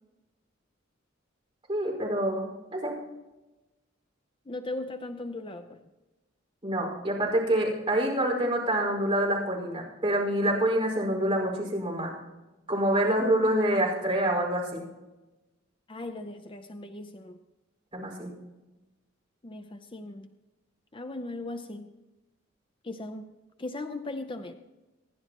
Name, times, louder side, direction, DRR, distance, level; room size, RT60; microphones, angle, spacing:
voice 1, 1.7-3.0 6.6-12.1 12.7-14.9 17.9-18.3, right 1 dB, 25° right, -2 dB, 5.0 m, -26 dB
voice 2, 4.5-5.8 13.2-13.6 15.9-17.4 19.4-20.3 20.9-21.9 22.8-23.3 23.6-24.5, left 2 dB, 25° left, 7 dB, 0.6 m, -38 dB
27.0 x 11.0 x 3.0 m, 1.1 s
head